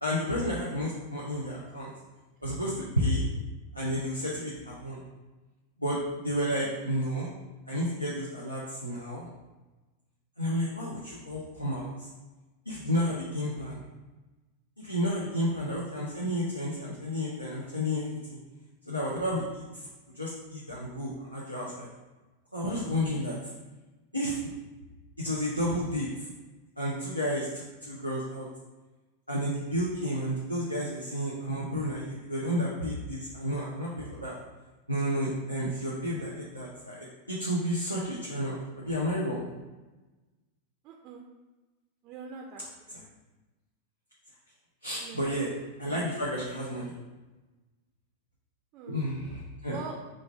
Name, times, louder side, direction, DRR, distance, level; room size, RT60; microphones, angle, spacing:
voice 1, 0.0-1.9 2.4-3.2 3.7-5.0 5.8-7.3 7.7-9.3 10.4-12.1 12.7-13.8 14.8-18.4 18.9-19.8 20.2-21.9 22.5-23.3 24.1-24.4 25.2-26.1 26.8-28.5 29.3-34.3 34.9-39.4 42.9-43.0 44.8-45.5 45.8-46.9 48.9-49.8, equal, 90° left, -6 dB, 0.6 m, -31 dB
voice 2, 40.8-41.2 42.0-43.0 45.0-45.4 48.7-49.0 49.7-50.0, right 6 dB, 40° right, 0 dB, 0.4 m, -43 dB
3.2 x 2.5 x 4.4 m, 1.2 s
figure-of-eight pair, 90°, 0 cm